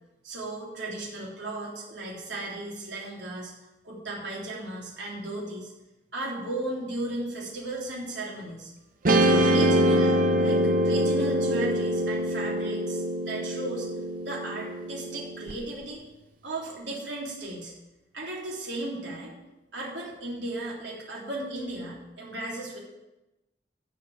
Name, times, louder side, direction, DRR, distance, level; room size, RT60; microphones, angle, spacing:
voice 1, 0.2-3.5 3.8-5.7 6.1-8.7 9.2-13.9 14.2-16.1 16.4-17.7 18.1-19.4 19.7-22.8, right 2 dB, 90° right, -4 dB, 3.4 m, -35 dB
Guitar, 9.1-15.5, equal, 50° right, 0.8 m, -24 dB
12.0 x 4.8 x 8.5 m, 0.97 s
head